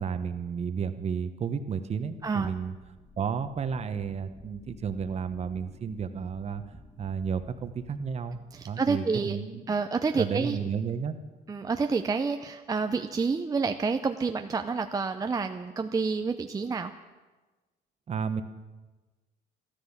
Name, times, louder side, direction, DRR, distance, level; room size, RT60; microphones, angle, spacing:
voice 1, 0.0-2.7 3.2-6.6 7.0-8.4 8.6-9.8 10.1-11.1 18.1-18.4, right 6 dB, 40° right, 10 dB, 1.1 m, -32 dB
sound 1, 2.1-8.8, left 2 dB, 25° left, 3.6 m, -54 dB
voice 2, 8.5-9.4 9.7-10.6 11.5-16.9, right 4 dB, 20° right, 7 dB, 0.6 m, -29 dB
13.5 x 13.5 x 7.2 m, 1.2 s
cardioid pair, 110°, 17 cm